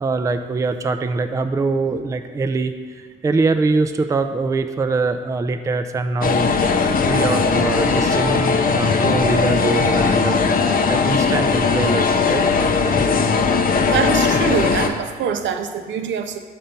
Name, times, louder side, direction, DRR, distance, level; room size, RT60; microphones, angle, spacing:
voice 1, 0.0-2.8 3.2-6.5 7.0-12.4, right 3 dB, 15° right, 8 dB, 0.3 m, -23 dB
sound 1, 6.2-14.9, left 5 dB, 45° left, 0.5 m, -18 dB
voice 2, 13.9-16.4, right 6 dB, 70° right, 7 dB, 0.6 m, -24 dB
5.4 x 4.4 x 5.2 m, 1.5 s
cardioid pair, 90°, 20 cm